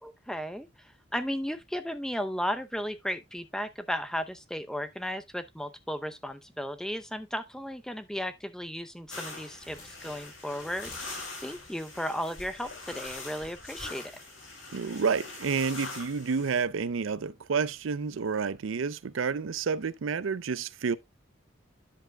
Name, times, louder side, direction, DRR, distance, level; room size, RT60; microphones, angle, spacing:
voice 1, 0.0-0.7 1.1-14.0, equal, 5° left, 0.6 m, -35 dB
sound 1, 9.1-16.6, left 3 dB, 90° left, 6.5 m, -43 dB
sound 2, 9.6-14.0, left 1 dB, 30° left, 4.5 m, -52 dB
voice 2, 14.7-21.0, right 5 dB, 85° right, 0.5 m, -29 dB
10.5 x 7.6 x 2.2 m
head